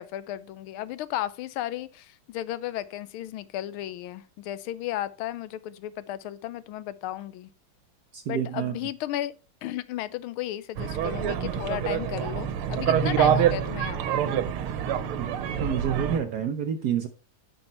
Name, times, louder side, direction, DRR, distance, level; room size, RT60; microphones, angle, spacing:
voice 1, 0.0-7.5 8.3-9.3 9.6-14.2, left 13 dB, 85° left, 1.5 m, -34 dB
voice 2, 8.1-8.7 15.2-15.3 15.6-17.1, right 8 dB, 60° right, 1.1 m, -28 dB
sound 1, 10.8-16.2, right 9 dB, 90° right, 1.7 m, -26 dB
10.0 x 5.6 x 4.2 m
omnidirectional pair, 2.3 m